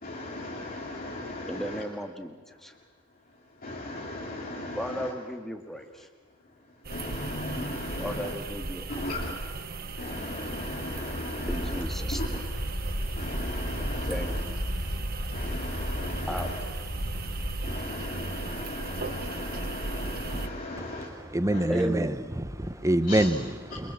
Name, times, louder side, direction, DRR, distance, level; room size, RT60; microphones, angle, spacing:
voice 1, 0.0-1.8 3.6-5.1 6.9-8.3 8.9-9.4 10.0-11.8 12.1-12.4 13.1-14.4 15.3-16.6 17.6-21.1 21.5-21.6 23.1-23.3, left 1 dB, 40° left, 2.7 m, -36 dB
voice 2, 1.5-2.7 4.7-6.1 8.0-9.1 11.5-12.5 14.1-14.7 16.3-16.8 21.7-22.2, equal, ahead, 1.8 m, -36 dB
sound 1, 6.8-20.5, right 3 dB, 45° right, 1.0 m, -38 dB
sound 2, 11.4-17.8, equal, 65° left, 5.5 m, -33 dB
voice 3, 20.8-23.9, right 1 dB, 15° right, 0.9 m, -27 dB
29.0 x 24.0 x 7.3 m
head